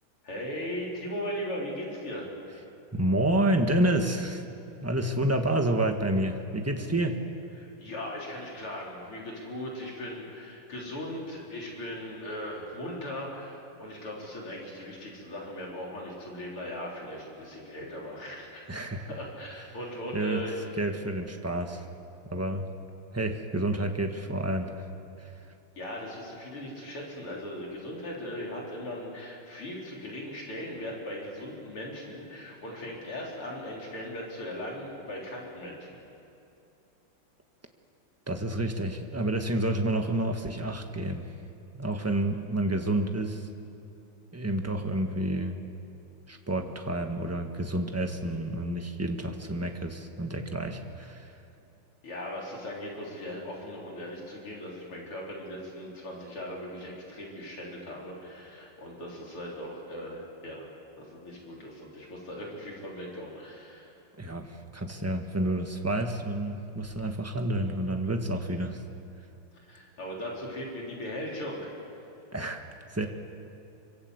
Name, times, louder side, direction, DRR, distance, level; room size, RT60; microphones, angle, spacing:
voice 1, 0.2-2.3 7.6-18.6 19.0-20.7 25.8-36.0 52.0-60.7 61.0-64.0 69.7-71.6, left 1 dB, 75° left, -3 dB, 5.0 m, -38 dB
voice 2, 2.9-4.4 4.8-7.2 18.7-19.1 20.1-20.4 20.8-21.8 22.3-22.6 23.1-24.8 25.2-25.3 38.3-41.2 41.7-43.5 44.3-45.6 46.3-51.3 64.2-68.8 72.3-73.1, right 1 dB, 10° right, 4 dB, 1.2 m, -29 dB
26.0 x 25.0 x 8.1 m, 2.7 s
omnidirectional pair, 2.4 m